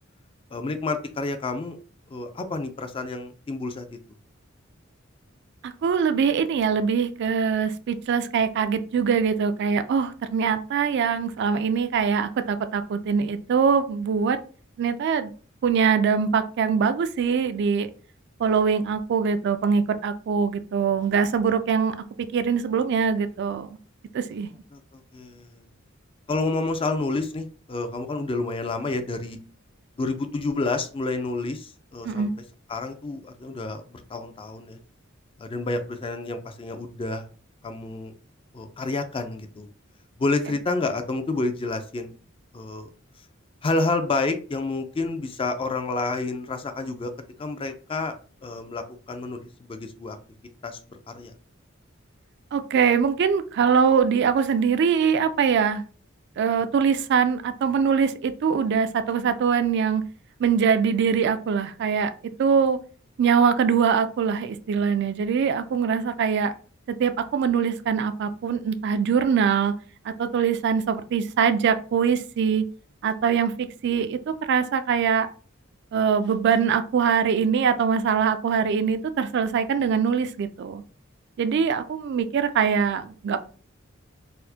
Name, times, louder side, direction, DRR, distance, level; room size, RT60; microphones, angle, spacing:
voice 1, 0.5-1.8 2.1-3.9 24.7-25.7 26.3-29.4 30.0-32.3 32.7-34.8 35.4-37.2 37.6-38.1 38.5-39.7 40.2-42.1 42.5-42.9 43.6-47.1 47.4-48.1 48.4-50.2 50.6-50.8 51.1-51.3, left 3 dB, 25° left, 8 dB, 0.4 m, -29 dB
voice 2, 5.6-14.4 14.8-15.3 15.6-17.9 18.4-21.9 22.3-23.7 24.1-24.5 32.0-32.3 52.5-55.8 56.4-60.0 60.4-62.1 62.4-62.8 63.2-66.5 66.9-69.7 70.1-72.6 73.0-75.3 75.9-80.8 81.4-83.4, right 6 dB, 55° right, 11 dB, 0.3 m, -23 dB
4.2 x 2.1 x 2.7 m, 0.39 s
head